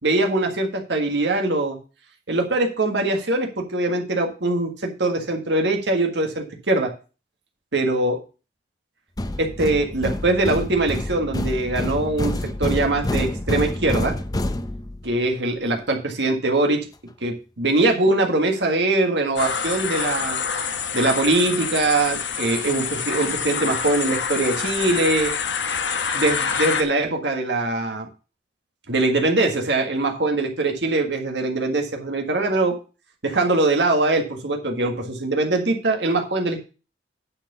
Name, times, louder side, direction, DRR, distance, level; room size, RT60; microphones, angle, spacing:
voice 1, 0.0-1.8 2.3-6.9 7.7-8.2 9.4-14.1 15.0-16.8 17.2-20.4 20.9-25.3 26.1-28.1 28.9-32.7 33.2-36.6, right 2 dB, 70° right, 3 dB, 1.7 m, -22 dB
sound 1, 9.2-15.2, left 1 dB, 20° left, 0.6 m, -27 dB
sound 2, 19.4-26.8, left 6 dB, 75° left, 1.1 m, -26 dB
9.7 x 4.5 x 6.7 m, 0.34 s
head